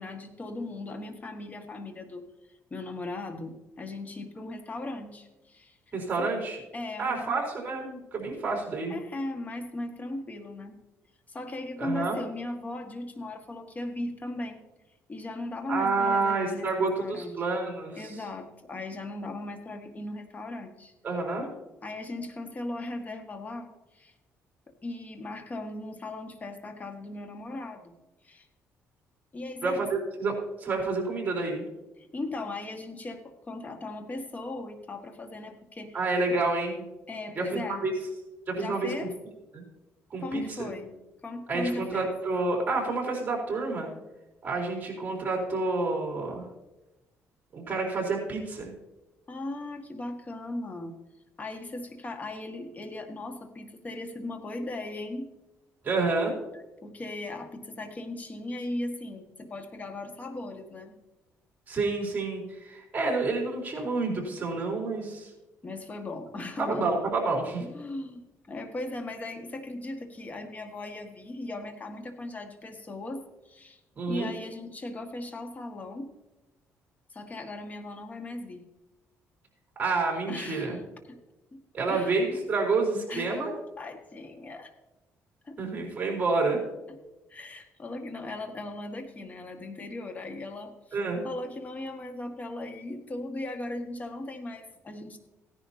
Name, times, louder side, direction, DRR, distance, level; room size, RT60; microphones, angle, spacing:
voice 1, 0.0-2.3 2.7-5.8 6.2-6.3 6.7-7.4 8.9-10.8 11.3-14.6 15.1-17.4 17.9-20.9 21.8-24.1 24.8-27.9 28.2-28.5 29.3-29.8 32.0-36.0 37.1-37.8 38.6-39.1 40.2-40.9 41.2-42.1 49.3-50.9 51.4-55.3 56.5-61.0 65.6-66.9 67.6-73.8 74.1-76.1 77.1-78.6 80.3-80.8 81.1-81.2 81.5-81.6 81.9-82.2 83.1-84.7 85.4-85.6 86.9-87.0 87.3-91.0 91.2-95.2, left 2 dB, 30° left, 5 dB, 1.7 m, -38 dB
voice 2, 5.9-6.6 7.0-9.0 11.8-12.2 15.7-18.1 21.0-21.5 29.6-31.6 35.9-36.8 37.4-37.9 38.5-38.9 39.5-39.6 40.1-40.7 41.5-43.9 44.4-46.5 47.5-48.7 55.8-56.4 61.7-65.3 66.6-67.6 74.0-74.3 79.8-80.8 81.7-83.5 85.6-86.6 90.9-91.2, right 3 dB, 30° right, -1 dB, 4.1 m, -29 dB
16.5 x 10.5 x 2.8 m, 1.0 s
cardioid pair, 110°, 5 cm